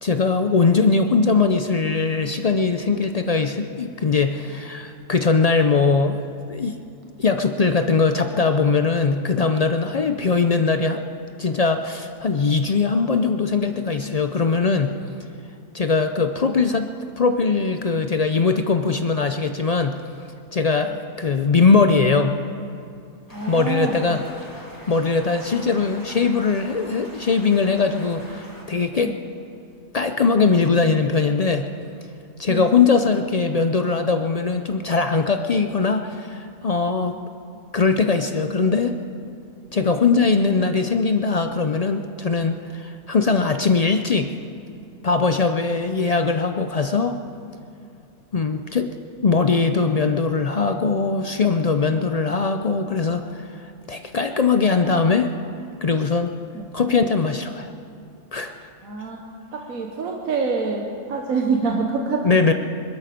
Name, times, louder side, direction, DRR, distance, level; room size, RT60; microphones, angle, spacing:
voice 1, 0.0-6.2 6.5-6.8 7.2-11.0 11.4-14.9 15.7-16.9 17.2-20.0 20.5-22.3 23.5-24.2 24.9-29.1 29.9-31.7 32.4-37.2 37.7-39.0 39.7-44.3 45.0-47.2 48.3-48.9 49.2-55.3 55.8-56.3 56.7-57.7 58.3-58.5 62.2-62.5, left 4 dB, 65° left, 7 dB, 0.3 m, -20 dB
sound 1, 23.3-28.6, equal, 15° left, 2.2 m, -42 dB
voice 2, 23.3-24.2 29.0-29.2 32.5-32.7 56.5-56.6 58.8-59.2 59.5-62.5, right 4 dB, 75° right, 1 dB, 1.6 m, -26 dB
22.0 x 12.5 x 5.1 m, 2.5 s
omnidirectional pair, 1.5 m